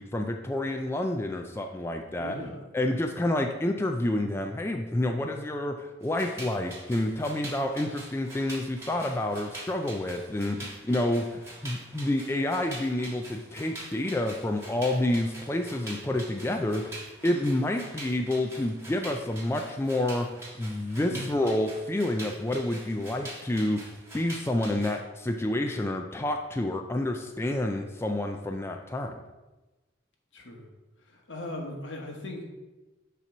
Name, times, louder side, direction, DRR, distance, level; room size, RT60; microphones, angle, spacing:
voice 1, 0.0-2.4 2.7-29.2, left 1 dB, 15° left, 3 dB, 0.3 m, -29 dB
voice 2, 2.2-2.6 21.0-21.4 30.3-30.7 31.0-32.4, left 1 dB, 75° left, 1 dB, 1.2 m, -38 dB
sound 1, 6.0-25.0, right 1 dB, 15° right, 1.4 m, -44 dB
6.8 x 3.0 x 5.9 m, 1.1 s
head